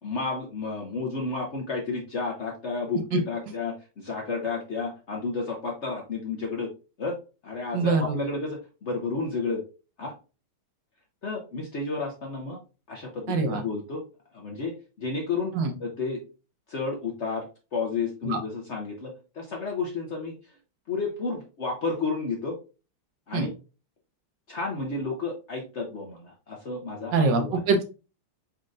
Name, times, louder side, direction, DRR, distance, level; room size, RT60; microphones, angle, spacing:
voice 1, 0.0-6.7 7.0-9.6 10.0-10.2 11.2-12.6 12.9-14.0 14.3-14.7 15.0-16.2 16.7-17.5 17.7-20.5 20.9-22.6 23.3-23.5 24.5-27.6, left 4 dB, 60° left, 0 dB, 0.7 m, -31 dB
voice 2, 7.7-8.2 13.3-13.6 15.5-15.7 18.2-18.4 23.3-23.5 27.1-27.8, right 4 dB, 65° right, 5 dB, 1.4 m, -24 dB
4.3 x 3.8 x 2.4 m, 0.32 s
omnidirectional pair, 2.2 m